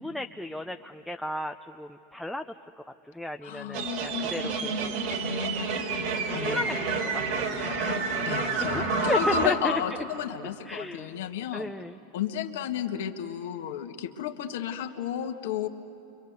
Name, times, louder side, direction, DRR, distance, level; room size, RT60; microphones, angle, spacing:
voice 1, 0.0-2.4 3.1-5.4 6.3-7.8 8.6-9.8 10.7-11.2 11.5-12.0, left 1 dB, ahead, 4 dB, 0.6 m, -34 dB
voice 2, 3.4-4.0 6.3-6.6 7.6-11.7 12.1-15.7, left 10 dB, 75° left, 5 dB, 1.6 m, -33 dB
sound 1, 3.7-9.5, right 3 dB, 60° right, 4.2 m, -29 dB
30.0 x 24.5 x 8.1 m, 3.0 s
hypercardioid pair, 110°, 0 cm